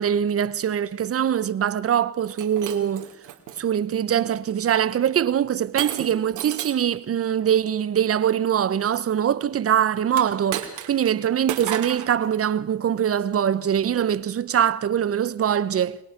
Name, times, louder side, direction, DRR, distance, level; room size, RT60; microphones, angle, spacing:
voice 1, 0.0-3.1 3.6-16.0, right 9 dB, 50° right, 1.0 m, -23 dB
Shatter, 2.2-3.6 4.2-4.6 5.8-6.9 10.1-11.1 11.5-12.1, right 11 dB, 85° right, 2.5 m, -32 dB
22.0 x 21.0 x 5.9 m
cardioid pair, 90°, 30 cm